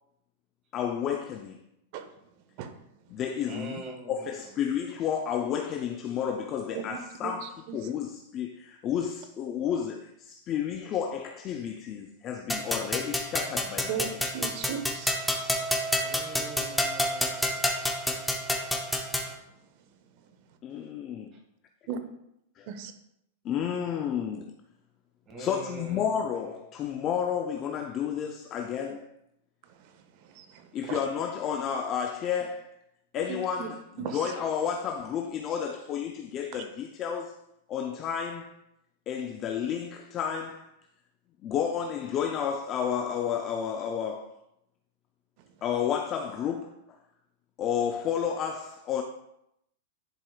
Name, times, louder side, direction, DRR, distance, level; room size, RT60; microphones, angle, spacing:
voice 1, 0.7-1.6 3.1-3.8 4.1-7.5 7.7-14.1 20.6-21.3 22.6-22.7 23.4-24.5 25.4-29.1 30.7-32.7 33.1-37.3 37.7-38.6 39.1-40.7 41.4-44.4 45.6-46.7 47.6-49.0, left 8 dB, 35° left, 0.5 m, -31 dB
voice 2, 2.5-2.9 6.7-7.9 13.9-15.8 18.5-18.7 19.2-19.8 20.2-20.3 21.9-22.0 22.7-22.9 29.6-31.0 33.3-33.7 34.0-34.3 36.5-36.6, right 7 dB, 50° right, 0.9 m, -39 dB
voice 3, 3.4-4.6 16.0-17.7 25.3-26.2, right 2 dB, 30° right, 1.8 m, -43 dB
sound 1, 12.5-19.3, left 1 dB, 5° left, 0.8 m, -29 dB
10.5 x 4.8 x 2.4 m
hypercardioid pair, 130°, 0 cm